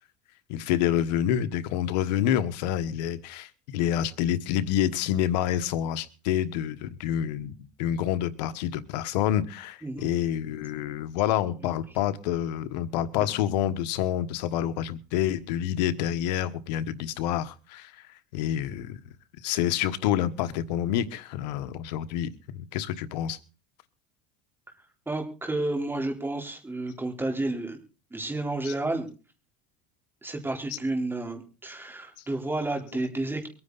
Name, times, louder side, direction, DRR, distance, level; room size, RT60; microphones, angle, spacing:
voice 1, 0.5-7.5 7.8-17.9 18.3-19.0 19.4-23.4 28.6-28.7, left 11 dB, 90° left, 1.4 m, -28 dB
voice 2, 25.1-27.8 28.1-29.1 30.2-33.5, right 2 dB, 10° right, 4.0 m, -31 dB
23.5 x 9.6 x 4.1 m
supercardioid pair, 130°, 21 cm